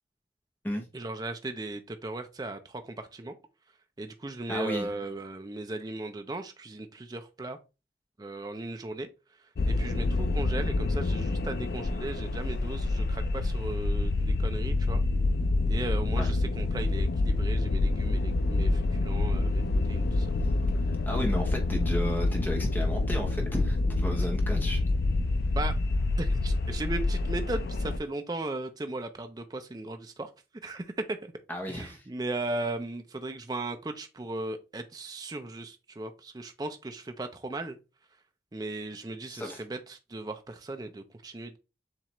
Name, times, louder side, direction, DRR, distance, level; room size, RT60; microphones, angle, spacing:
voice 1, 0.9-3.4 4.0-7.6 8.2-15.0 15.7-20.3 25.5-25.8 26.2-30.3 30.6-31.3 31.7-37.8 38.5-41.6, right 2 dB, 20° right, 0.4 m, -37 dB
voice 2, 4.5-4.9 16.2-16.3 20.4-20.5 21.1-24.8 31.5-32.0 39.3-39.6, equal, 10° left, 0.8 m, -33 dB
sound 1, 9.6-28.0, left 2 dB, 65° left, 0.4 m, -27 dB
7.2 x 2.4 x 3.0 m
head